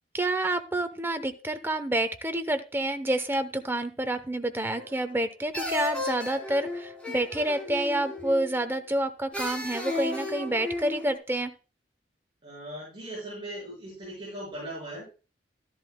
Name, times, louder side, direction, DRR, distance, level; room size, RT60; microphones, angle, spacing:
voice 1, 0.1-11.5, right 1 dB, 15° right, 9 dB, 0.8 m, -28 dB
sound 1, 4.7-5.2 5.5-8.6 9.3-11.2, left 2 dB, 5° left, 3.4 m, -34 dB
voice 2, 12.4-15.0, right 1 dB, 30° right, -6 dB, 6.1 m, -39 dB
13.0 x 11.0 x 2.2 m, 0.33 s
head